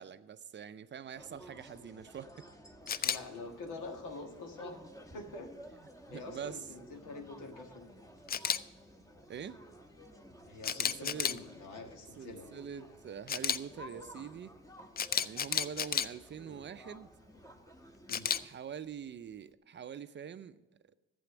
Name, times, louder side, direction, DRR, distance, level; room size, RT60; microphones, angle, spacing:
voice 1, 0.0-2.3 2.9-3.1 6.1-6.6 9.3-9.6 10.8-11.3 12.2-14.6 15.2-17.1 18.4-20.6, right 8 dB, 40° right, 0.5 m, -44 dB
sound 1, 1.1-18.5, equal, 10° left, 1.1 m, -54 dB
Camera, 2.9-3.2 8.3-8.6 10.6-11.4 13.3-13.6 15.0-16.1 18.1-18.4, left 7 dB, 30° left, 0.4 m, -31 dB
voice 2, 3.0-4.8 5.1-5.6 6.1-7.9 10.5-12.5 18.1-18.3, left 3 dB, 85° left, 1.6 m, -45 dB
11.5 x 7.7 x 6.0 m
cardioid pair, 90°, 30 cm